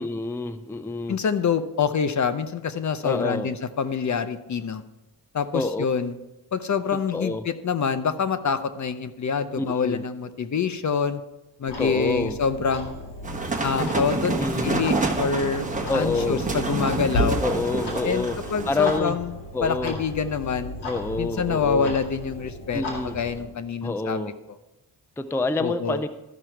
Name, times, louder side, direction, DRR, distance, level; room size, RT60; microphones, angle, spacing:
voice 1, 0.0-1.2 3.0-3.5 5.5-5.9 7.1-7.4 9.6-10.0 11.6-12.4 14.4-14.9 15.9-16.4 17.4-19.2 19.5-20.0 20.8-21.9 22.7-23.2 23.8-24.3 25.2-26.1, left 3 dB, 5° left, 10 dB, 0.4 m, -27 dB
voice 2, 1.1-4.8 5.3-6.1 6.5-11.2 11.6-12.9 13.6-15.7 15.9-17.4 18.0-19.3 19.6-20.8 21.2-22.8 23.1-24.2 25.6-26.0, left 6 dB, 45° left, 12 dB, 0.6 m, -26 dB
Clock, 11.7-23.4, left 1 dB, 70° left, 2.2 m, -35 dB
sound 1, 13.2-19.0, right 3 dB, 20° right, 1.2 m, -28 dB
13.0 x 6.0 x 4.5 m, 0.99 s
cardioid pair, 90°, 41 cm